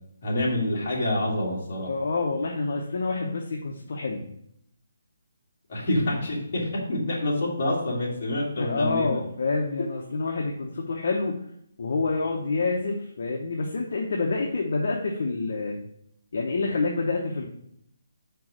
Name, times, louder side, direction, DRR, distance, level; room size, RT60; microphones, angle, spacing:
voice 1, 0.2-1.9 5.7-9.2, left 1 dB, 35° left, -5 dB, 2.0 m, -27 dB
voice 2, 1.9-4.3 8.6-11.4 11.8-15.8 16.3-17.5, left 3 dB, 50° left, 0 dB, 0.8 m, -27 dB
4.9 x 4.6 x 6.1 m, 0.73 s
hypercardioid pair, 175°, 0 cm